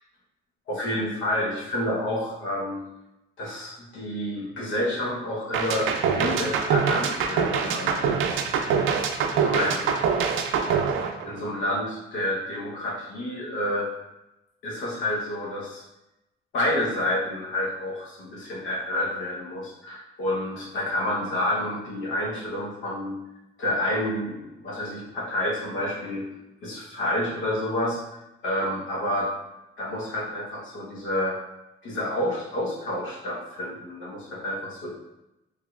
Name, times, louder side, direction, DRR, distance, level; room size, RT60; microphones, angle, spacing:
voice 1, 0.7-2.8 3.4-8.0 9.3-9.9 11.2-13.9 14.6-15.8 16.5-23.2 23.6-26.3 26.6-29.3 29.8-31.4 31.8-34.9, left 1 dB, 80° left, -3 dB, 1.0 m, -29 dB
sound 1, 5.5-11.7, right 6 dB, 90° right, 0.4 m, -24 dB
3.5 x 3.0 x 2.3 m, 0.93 s
cardioid pair, 90°, 20 cm